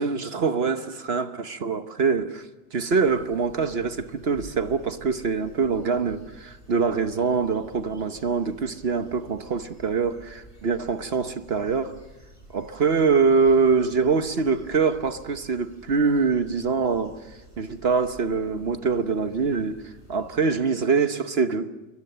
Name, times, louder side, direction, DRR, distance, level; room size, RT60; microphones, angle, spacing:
voice 1, 0.0-11.9 12.5-21.7, right 5 dB, 45° right, 0.9 m, -24 dB
sound 1, 3.0-20.4, right 1 dB, 15° left, 7.7 m, -50 dB
27.0 x 22.5 x 6.8 m
omnidirectional pair, 2.0 m